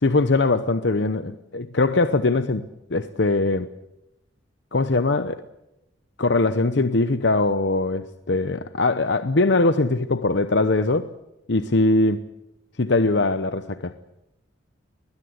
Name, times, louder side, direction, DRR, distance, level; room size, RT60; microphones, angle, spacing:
voice 1, 0.0-3.7 4.7-5.4 6.2-11.1 11.5-12.2 12.8-13.9, left 2 dB, 65° left, 0.9 m, -21 dB
21.5 x 21.0 x 8.1 m
head